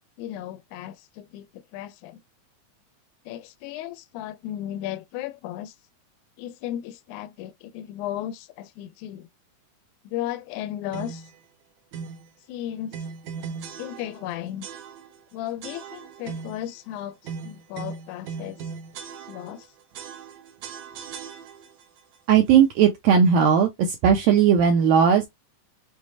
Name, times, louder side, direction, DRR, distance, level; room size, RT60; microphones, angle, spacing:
voice 1, 0.2-2.2 3.2-5.7 6.4-9.3 10.0-11.3 12.5-13.0 13.8-14.7 15.3-18.6 19.3-19.7, left 12 dB, 80° left, 1.7 m, -35 dB
sound 1, 10.9-11.4 11.9-12.3 12.9-14.3 14.6-15.2 15.6-16.7 17.2-19.6 19.9-21.8, right 6 dB, 75° right, 1.8 m, -38 dB
voice 2, 22.3-25.3, right 7 dB, 90° right, 1.6 m, -18 dB
6.1 x 2.3 x 2.6 m
omnidirectional pair, 3.9 m